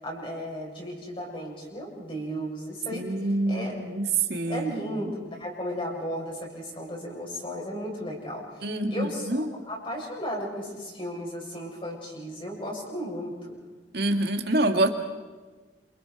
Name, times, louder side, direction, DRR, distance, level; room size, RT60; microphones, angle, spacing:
voice 1, 0.0-3.7 4.5-13.6, equal, 30° left, -3 dB, 7.5 m, -35 dB
voice 2, 2.9-4.0 4.3-4.7 5.0-5.1 8.6-9.5 13.9-14.9, right 1 dB, 60° right, 4 dB, 2.3 m, -26 dB
28.5 x 28.0 x 5.0 m, 1.3 s
head